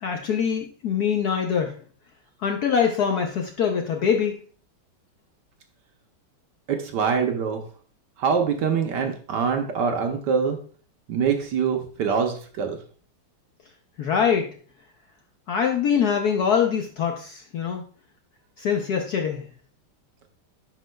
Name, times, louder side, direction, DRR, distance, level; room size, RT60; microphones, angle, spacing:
voice 1, 0.0-1.7 2.4-4.3 14.0-14.5 15.5-17.8 18.6-19.4, left 7 dB, 65° left, 3 dB, 1.0 m, -23 dB
voice 2, 6.7-7.6 8.2-10.6 11.1-12.8, right 6 dB, 65° right, 4 dB, 1.3 m, -24 dB
10.5 x 4.5 x 2.2 m, 0.43 s
omnidirectional pair, 2.3 m